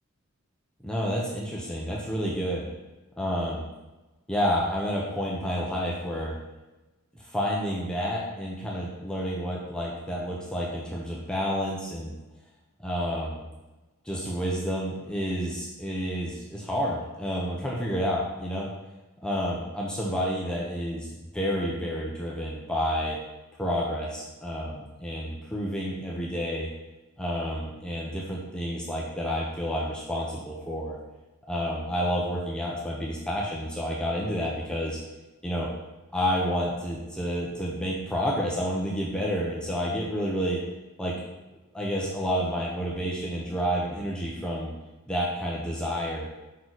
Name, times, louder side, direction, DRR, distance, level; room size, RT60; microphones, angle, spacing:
voice 1, 0.8-2.7 3.2-3.7 4.3-6.4 7.2-12.1 12.8-13.5 14.0-18.7 19.2-23.2 23.6-26.7 27.2-31.0 31.5-35.0 35.4-35.7 36.1-40.6 41.0-41.1 41.7-44.7 45.1-46.3, equal, 5° left, -4 dB, 0.9 m, -29 dB
6.1 x 4.7 x 4.0 m, 1.1 s
head